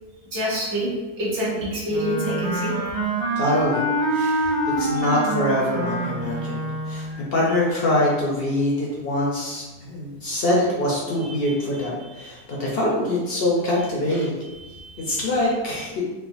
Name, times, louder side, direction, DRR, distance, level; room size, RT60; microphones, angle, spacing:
voice 1, 0.3-0.9 1.2-2.7 14.7-15.2, equal, 50° right, -6 dB, 1.3 m, -26 dB
Wind instrument woodwind instrument, 1.9-7.2, right 1 dB, 70° right, 1.5 m, -26 dB
voice 2, 3.4-14.3 15.0-16.0, left 1 dB, 65° left, -4 dB, 0.5 m, -24 dB
4.4 x 2.2 x 2.5 m, 1.2 s
omnidirectional pair, 1.7 m